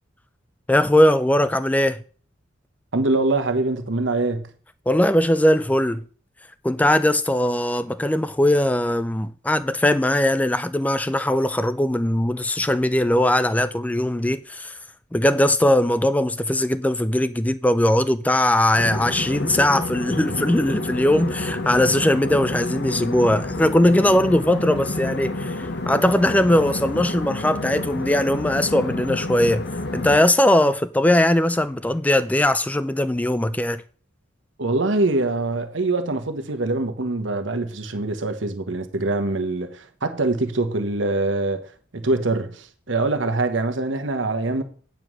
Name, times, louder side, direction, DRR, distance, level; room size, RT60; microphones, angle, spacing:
voice 1, 0.7-2.0 4.9-6.0 6.6-14.8 15.1-29.7 29.9-33.8, left 1 dB, 10° left, 0.4 m, -20 dB
voice 2, 2.9-4.5 34.6-41.7 41.9-44.6, right 2 dB, 75° right, 1.1 m, -24 dB
sound 1, 18.8-30.2, left 2 dB, 60° left, 0.9 m, -29 dB
9.3 x 4.7 x 6.2 m
head